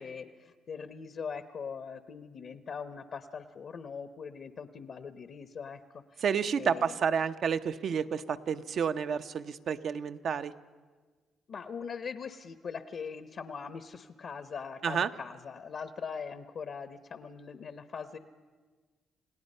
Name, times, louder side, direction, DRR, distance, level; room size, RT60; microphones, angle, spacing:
voice 1, 0.0-6.2 6.6-7.0 11.5-18.2, left 6 dB, 60° left, 11 dB, 0.8 m, -41 dB
voice 2, 6.2-10.5 14.8-15.1, right 7 dB, 60° right, 10 dB, 0.7 m, -30 dB
28.5 x 17.5 x 5.5 m, 1.4 s
cardioid pair, 90°, 0 cm